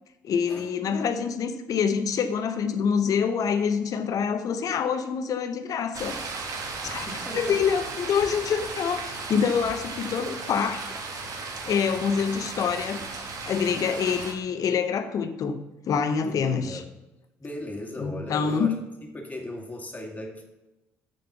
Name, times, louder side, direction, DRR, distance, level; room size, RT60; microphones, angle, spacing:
voice 1, 0.2-6.2 6.8-10.9 11.4-13.1 13.4-15.6 15.9-16.8 18.0-18.8, left 6 dB, 55° left, 9 dB, 0.7 m, -26 dB
sound 1, 5.9-14.3, right 4 dB, 55° right, 1.4 m, -36 dB
voice 2, 6.8-7.6 16.3-16.8 17.4-18.7 19.0-20.4, left 1 dB, 20° left, 1 dB, 2.2 m, -37 dB
6.7 x 5.4 x 6.8 m, 1.0 s
hypercardioid pair, 50°, 7 cm